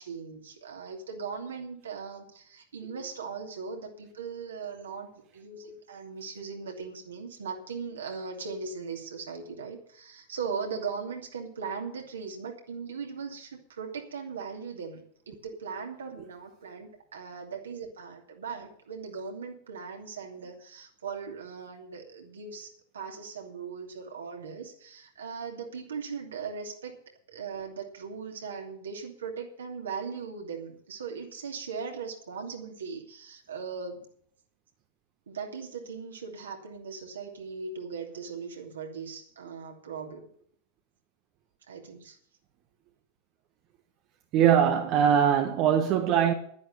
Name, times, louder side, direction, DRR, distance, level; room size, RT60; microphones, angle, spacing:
voice 1, 0.0-27.0 27.3-34.1 35.3-40.3 41.7-42.2, right 5 dB, 70° right, 2.7 m, -39 dB
voice 2, 44.3-46.3, right 9 dB, 40° right, 1.2 m, -22 dB
11.5 x 10.5 x 6.7 m
figure-of-eight pair, 90°, 0 cm